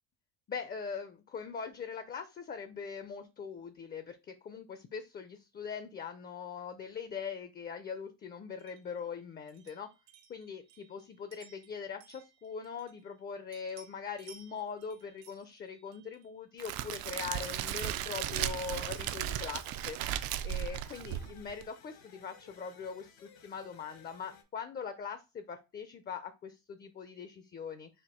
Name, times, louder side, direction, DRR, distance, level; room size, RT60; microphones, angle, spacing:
voice 1, 0.5-9.9 10.3-27.9, left 6 dB, 25° left, 10 dB, 0.5 m, -42 dB
sound 1, 8.6-13.2 13.5-16.4 16.8-19.9, right 7 dB, 90° right, 0.9 m, -60 dB
Crackle, 16.6-21.6, right 11 dB, 70° right, 0.5 m, -36 dB
sound 2, 18.0-24.4, left 6 dB, 70° left, 1.3 m, -58 dB
4.3 x 2.6 x 4.2 m, 0.27 s
cardioid pair, 115°, 37 cm